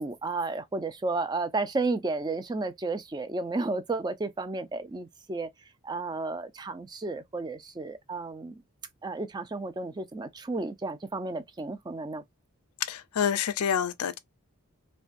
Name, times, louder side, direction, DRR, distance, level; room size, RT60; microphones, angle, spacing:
voice 1, 0.0-5.5 5.8-8.6 9.0-12.2, right 3 dB, 20° right, 0.3 m, -32 dB
voice 2, 12.8-14.2, left 8 dB, 90° left, 0.4 m, -28 dB
3.2 x 2.2 x 2.5 m
head